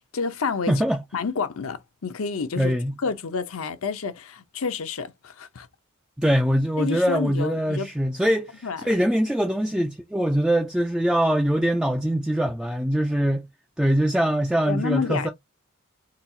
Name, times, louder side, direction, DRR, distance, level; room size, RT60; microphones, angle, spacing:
voice 1, 0.1-0.8 1.1-2.7 3.0-5.7 6.8-7.9 8.6-8.9 14.7-15.3, left 5 dB, 70° left, 0.7 m, -29 dB
voice 2, 0.7-1.0 2.6-3.0 6.2-13.4 13.8-15.3, equal, 5° right, 0.3 m, -23 dB
4.0 x 2.4 x 2.7 m
head